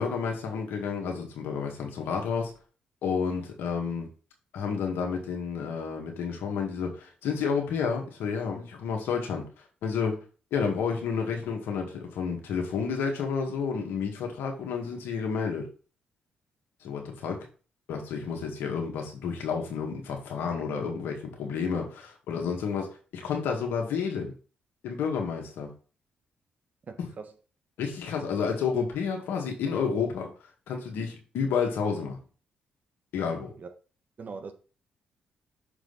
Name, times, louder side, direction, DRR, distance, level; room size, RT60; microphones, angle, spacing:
voice 1, 0.0-2.5 3.0-4.1 4.5-9.5 9.8-10.2 10.5-15.7 16.8-17.5 17.9-24.3 24.8-25.7 27.0-27.1 27.8-30.3 30.7-32.2 33.1-33.5, left 6 dB, 75° left, 1.9 m, -30 dB
voice 2, 26.9-27.3 33.6-33.7 34.2-34.5, right 5 dB, 50° right, 1.2 m, -41 dB
6.3 x 5.0 x 4.1 m
hypercardioid pair, 45°, 4 cm